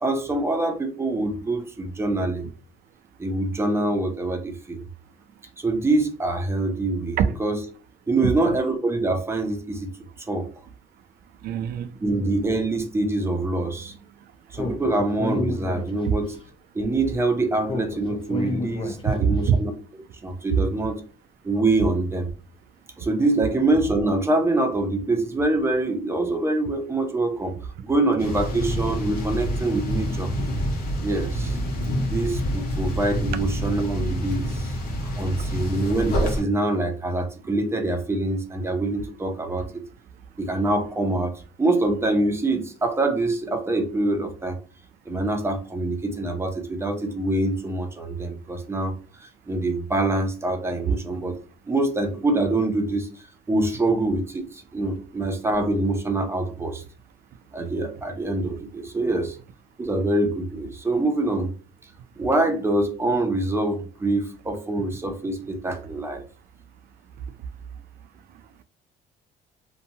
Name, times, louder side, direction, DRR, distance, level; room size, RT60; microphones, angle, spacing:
voice 1, 0.0-2.5 3.2-4.8 5.6-7.6 8.1-9.9 10.3-10.5 12.0-14.1 14.5-16.4 16.7-21.0 21.4-22.3 23.0-27.5 27.8-30.3 31.0-31.6 32.1-34.8 35.0-39.7 40.4-44.6 45.1-51.4 51.7-56.8 57.5-59.4 59.8-61.5 62.2-66.2, right 2 dB, 15° right, 0.6 m, -25 dB
voice 2, 11.4-11.9 16.0-16.1 19.0-19.6 20.5-20.6, right 8 dB, 65° right, 0.4 m, -22 dB
Speech, 14.5-16.4 17.7-19.4, left 3 dB, 30° left, 0.4 m, -31 dB
sound 1, 28.2-36.4, equal, 60° left, 0.8 m, -27 dB
2.8 x 2.2 x 2.7 m
cardioid pair, 110°, 17 cm